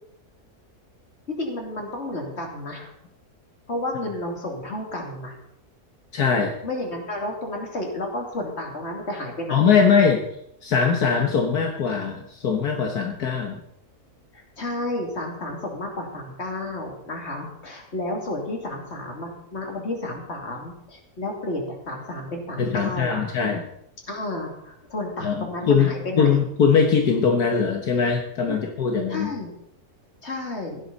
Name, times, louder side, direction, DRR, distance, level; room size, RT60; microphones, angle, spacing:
voice 1, 1.4-2.9 3.7-5.3 6.6-9.9 14.3-23.2 24.1-26.3 28.5-28.7 29.1-29.5 30.2-30.8, left 1 dB, 45° left, 1 dB, 3.1 m, -31 dB
voice 2, 6.1-6.5 9.5-10.2 10.6-13.6 22.6-23.6 25.2-25.9 26.2-29.3, left 6 dB, 75° left, 3 dB, 1.8 m, -21 dB
16.0 x 12.0 x 4.1 m, 0.78 s
omnidirectional pair, 1.7 m